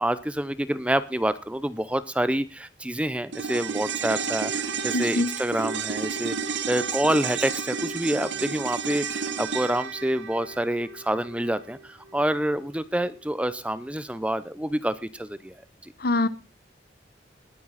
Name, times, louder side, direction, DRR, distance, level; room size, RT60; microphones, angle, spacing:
voice 1, 0.0-6.3 6.7-15.9, right 1 dB, 5° right, 14 dB, 0.7 m, -27 dB
sound 1, 3.3-11.8 12.1-12.2, right 6 dB, 80° right, 1.3 m, -31 dB
voice 2, 4.9-5.3 16.0-16.3, left 2 dB, 55° left, 16 dB, 0.9 m, -23 dB
20.0 x 9.2 x 4.1 m, 0.31 s
head